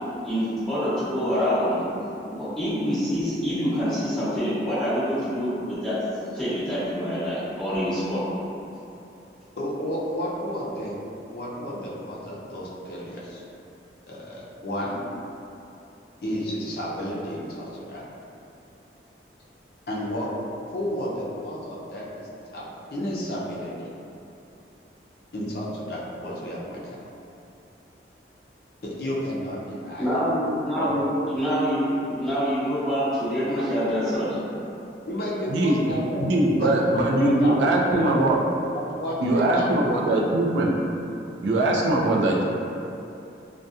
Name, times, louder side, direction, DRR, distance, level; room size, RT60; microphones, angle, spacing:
voice 1, 0.2-1.8 2.2-6.0 6.3-8.2 30.0-34.4, equal, 5° left, -14 dB, 0.7 m, -26 dB
voice 2, 9.6-10.9 11.3-13.4 14.1-15.0 16.2-18.0 19.9-20.3 20.6-22.7 22.9-23.9 25.3-26.8 28.8-30.2 30.8-30.9 35.1-36.2 36.5-38.3 38.6-40.2, equal, 60° left, -6 dB, 0.4 m, -32 dB
voice 3, 36.2-38.4 39.2-40.7 41.4-42.4, right 1 dB, 85° right, -2 dB, 0.4 m, -21 dB
2.7 x 2.1 x 2.3 m, 2.8 s
head